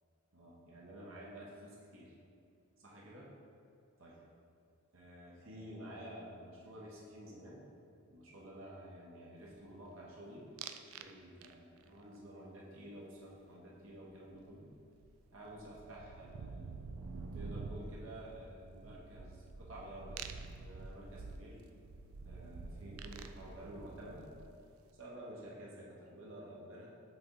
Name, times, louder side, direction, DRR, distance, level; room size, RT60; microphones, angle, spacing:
voice 1, 0.3-2.1 2.8-3.3 4.0-4.2 4.9-7.6 8.1-10.5 11.0-14.7 15.3-16.8 17.3-21.6 22.2-24.3 25.0-26.9, right 1 dB, 70° right, -5 dB, 1.0 m, -51 dB
Rock with Tempo and Pitch Change, 10.6-11.1 11.4-11.9 14.3-14.4 14.7-24.7, right 4 dB, 85° right, 0.4 m, -48 dB
6.1 x 3.8 x 4.7 m, 2.5 s
head